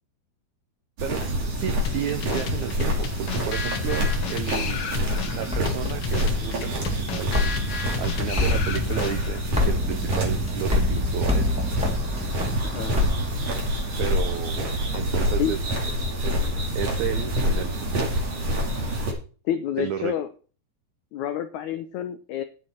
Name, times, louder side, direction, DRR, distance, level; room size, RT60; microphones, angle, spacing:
walking on the fall street, 1.0-19.1, equal, 45° right, 3.5 m, -27 dB
voice 1, 1.0-4.8 5.3-7.3 8.0-11.5 14.0-15.6 16.2-18.1 19.8-20.1, right 10 dB, 85° right, 9 dB, 1.6 m, -32 dB
sound 1, 1.8-9.5, left 5 dB, 70° left, 1.4 m, -33 dB
sound 2, 5.1-13.9, left 1 dB, ahead, 1.5 m, -28 dB
voice 2, 19.4-20.3 21.1-22.4, left 10 dB, 85° left, 9 dB, 1.7 m, -28 dB
10.0 x 9.3 x 4.5 m, 0.38 s
omnidirectional pair, 4.4 m